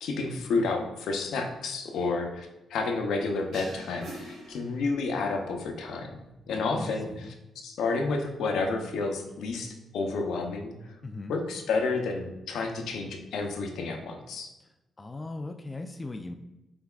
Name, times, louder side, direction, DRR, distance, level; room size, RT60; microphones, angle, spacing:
voice 1, 0.0-6.2 6.5-10.8 11.3-14.5, left 3 dB, 80° left, 3 dB, 0.7 m, -30 dB
sound 1, 3.5-5.3, right 1 dB, 80° right, 1.3 m, -45 dB
voice 2, 6.5-7.3 11.0-11.3 15.0-16.3, left 2 dB, 20° left, 5 dB, 0.3 m, -38 dB
5.7 x 3.5 x 2.3 m, 0.96 s
cardioid pair, 110°, 0 cm